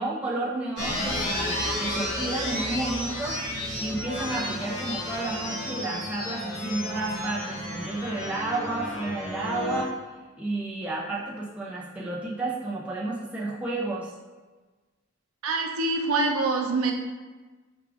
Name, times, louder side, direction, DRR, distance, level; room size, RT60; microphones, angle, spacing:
voice 1, 0.0-3.4 3.8-10.0 10.4-14.1, right 2 dB, 5° right, -6 dB, 0.5 m, -31 dB
sound 1, 0.8-9.8, left 1 dB, 55° left, 1.3 m, -32 dB
voice 2, 15.4-16.9, right 3 dB, 85° right, 1 dB, 0.6 m, -25 dB
4.9 x 2.4 x 3.4 m, 1.3 s
head